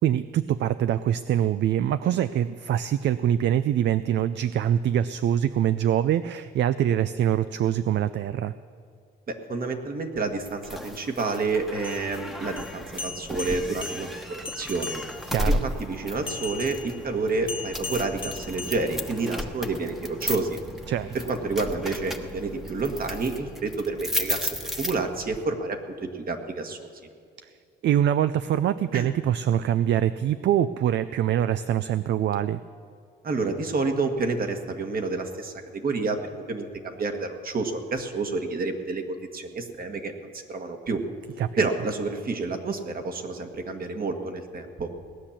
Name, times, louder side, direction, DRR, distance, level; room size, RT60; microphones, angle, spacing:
voice 1, 0.0-8.5 15.3-15.6 20.9-21.2 27.8-32.6 41.4-41.7, right 10 dB, 65° right, 13 dB, 0.5 m, -24 dB
voice 2, 9.3-15.0 15.5-20.6 21.1-26.9 28.9-29.1 33.2-36.2 36.5-41.0 41.6-44.9, right 3 dB, 45° right, 5 dB, 1.8 m, -29 dB
sound 1, 10.4-25.4, left 1 dB, ahead, 1.2 m, -34 dB
sound 2, 11.8-15.4 16.3-19.4, left 4 dB, 25° left, 1.2 m, -39 dB
18.5 x 9.9 x 7.4 m, 2.3 s
cardioid pair, 90°, 20 cm